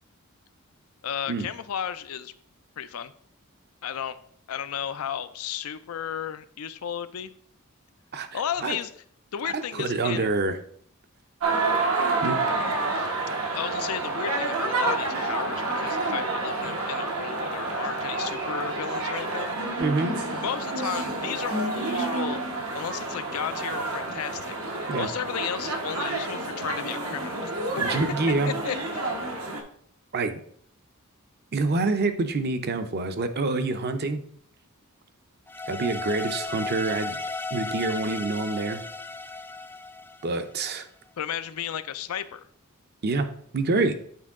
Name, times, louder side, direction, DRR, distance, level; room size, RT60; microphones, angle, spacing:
voice 1, 1.0-2.3 2.8-3.1 3.8-4.2 4.5-7.3 8.3-8.9 9.3-10.3 13.5-19.8 20.4-22.5 22.7-27.8 28.4-29.1 41.2-42.4, left 8 dB, 85° left, 13 dB, 0.4 m, -34 dB
voice 2, 8.1-8.8 9.5-10.6 12.2-12.4 19.8-20.1 24.9-25.1 27.8-28.5 30.1-30.4 31.5-34.2 35.7-37.2 37.5-38.8 40.2-40.9 43.0-43.3 43.5-43.9, right 3 dB, 50° right, 8 dB, 0.7 m, -26 dB
sound 1, 11.4-29.6, right 3 dB, 80° right, 1.1 m, -29 dB
sound 2, 35.5-40.7, left 3 dB, 10° left, 0.4 m, -35 dB
8.5 x 4.6 x 3.6 m, 0.63 s
head